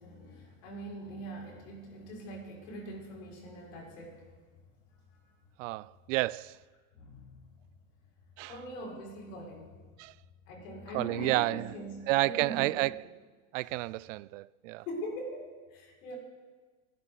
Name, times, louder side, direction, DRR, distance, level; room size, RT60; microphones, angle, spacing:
voice 1, 0.0-4.3 6.9-7.5 8.5-9.7 10.5-12.9 14.9-16.2, right 1 dB, 70° left, 6.0 m, -42 dB
voice 2, 5.6-6.6 8.4-8.5 10.0-10.1 10.9-11.7 12.1-13.0 13.5-14.8, right 20 dB, 65° right, 0.5 m, -30 dB
29.5 x 11.5 x 4.1 m
supercardioid pair, 150°, 41 cm